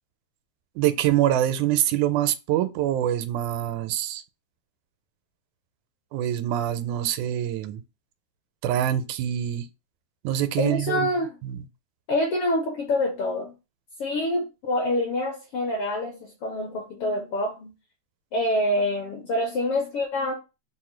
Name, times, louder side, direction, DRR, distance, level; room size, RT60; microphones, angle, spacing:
voice 1, 0.8-4.2 6.1-7.8 8.6-9.7 10.2-11.1 11.4-11.6, right 12 dB, 90° right, 2.0 m, -25 dB
voice 2, 10.6-11.4 12.1-13.5 14.0-17.7 18.3-20.3, left 1 dB, 70° left, 1.4 m, -26 dB
4.6 x 2.1 x 4.3 m
omnidirectional pair, 3.3 m